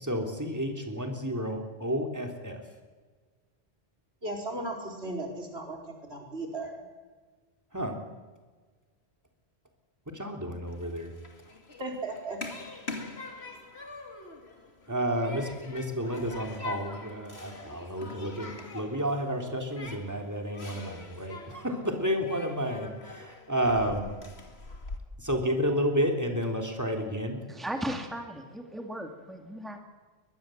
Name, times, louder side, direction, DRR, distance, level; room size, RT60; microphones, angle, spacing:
voice 1, 0.0-2.6 7.7-8.0 10.1-11.1 14.9-24.2 25.2-27.4, equal, 15° right, 3 dB, 3.6 m, -31 dB
voice 2, 4.2-6.8 11.8-12.4, right 2 dB, 75° right, 1 dB, 4.8 m, -36 dB
Human group actions, 10.7-25.0, left 3 dB, 75° left, 2.9 m, -44 dB
voice 3, 27.5-29.8, right 1 dB, ahead, 4 dB, 2.1 m, -36 dB
22.5 x 21.0 x 7.9 m, 1.4 s
omnidirectional pair, 1.1 m